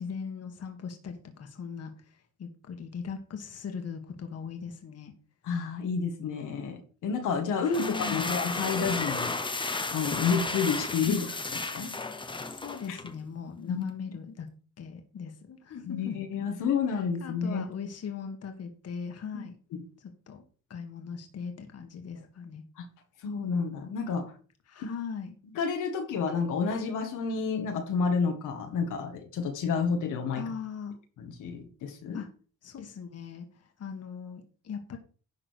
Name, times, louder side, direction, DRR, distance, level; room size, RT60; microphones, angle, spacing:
voice 1, 0.0-5.1 7.6-8.3 11.0-11.3 12.4-14.5 14.8-16.2 17.2-19.5 20.0-20.4 20.7-22.6 24.7-25.3 30.3-31.0 32.1-32.3 32.6-35.0, left 6 dB, 55° left, 5 dB, 1.8 m, -39 dB
voice 2, 5.4-9.3 9.9-11.2 11.7-11.9 12.9-13.0 13.7-14.2 15.9-17.6 19.7-19.8 22.8-22.9 23.2-24.3 24.8-24.9 25.6-30.4 31.2-32.2, left 5 dB, 85° left, 4 dB, 1.9 m, -30 dB
sound 1, 7.6-13.2, left 3 dB, 15° left, 1.0 m, -33 dB
11.0 x 3.8 x 6.6 m, 0.39 s
cardioid pair, 90°, 30 cm